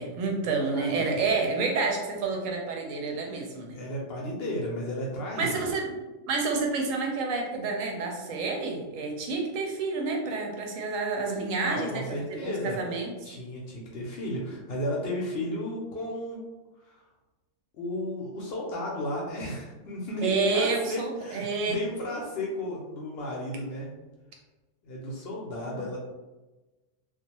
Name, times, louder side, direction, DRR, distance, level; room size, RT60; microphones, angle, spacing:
voice 1, 0.0-3.8 5.4-5.9 6.3-12.0 12.4-13.1 20.2-21.7, right 4 dB, 85° right, 1 dB, 1.0 m, -29 dB
voice 2, 0.7-1.3 3.7-5.6 11.6-12.8 13.2-16.4 16.8-17.0 17.7-23.9 24.8-26.0, left 1 dB, 65° left, -2 dB, 0.7 m, -34 dB
2.4 x 2.2 x 2.9 m, 1.1 s
omnidirectional pair, 1.3 m